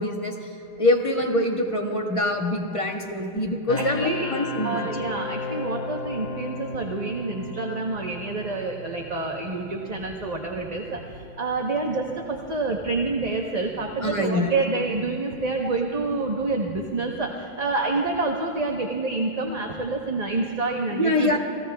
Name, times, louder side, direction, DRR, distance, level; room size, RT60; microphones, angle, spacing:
voice 1, 0.0-4.9 14.0-14.6 19.5-19.6 20.9-21.4, left 1 dB, 30° left, 1 dB, 1.4 m, -25 dB
sound 1, 3.7-16.5, left 3 dB, 50° left, 0.5 m, -38 dB
voice 2, 3.8-4.3 4.6-21.4, right 3 dB, 40° right, 1 dB, 1.0 m, -28 dB
29.0 x 18.0 x 2.3 m, 2.6 s
omnidirectional pair, 1.1 m